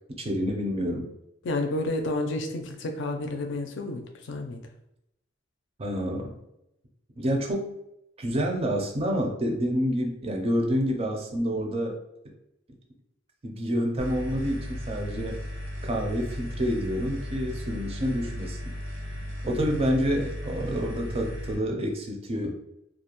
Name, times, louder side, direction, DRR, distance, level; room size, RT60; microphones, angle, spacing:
voice 1, 0.2-1.1 5.8-6.4 7.2-7.7 8.2-12.0 12.2-12.3 13.4-15.4 15.8-18.6 19.4-22.6, equal, 30° right, 1 dB, 0.4 m, -28 dB
voice 2, 1.4-4.6 19.6-19.8, left 2 dB, 65° left, 5 dB, 0.4 m, -30 dB
sound 1, 14.0-21.5, equal, 75° right, 0.6 m, -36 dB
2.4 x 2.1 x 2.9 m, 0.82 s
head